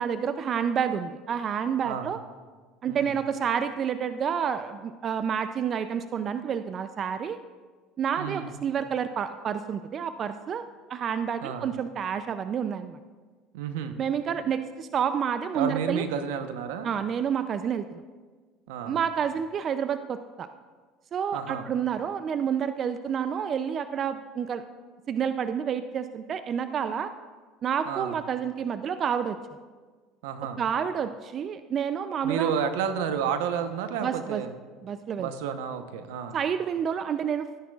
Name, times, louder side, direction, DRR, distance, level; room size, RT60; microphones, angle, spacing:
voice 1, 0.0-2.2 2.8-7.4 8.0-10.6 10.9-13.0 14.0-16.0 16.8-18.0 18.8-20.5 21.1-24.6 25.1-27.1 27.6-29.4 30.6-32.5 34.0-34.4 34.8-35.3 36.3-37.5, right 7 dB, 45° right, 11 dB, 0.4 m, -29 dB
voice 2, 8.2-8.5 11.4-11.7 13.5-14.0 15.5-16.9 18.7-19.0 21.3-21.6 27.8-28.2 30.2-30.6 32.2-34.5 35.2-36.4, right 7 dB, 80° right, 9 dB, 0.9 m, -31 dB
15.5 x 10.0 x 2.4 m, 1.4 s
supercardioid pair, 90°, 0 cm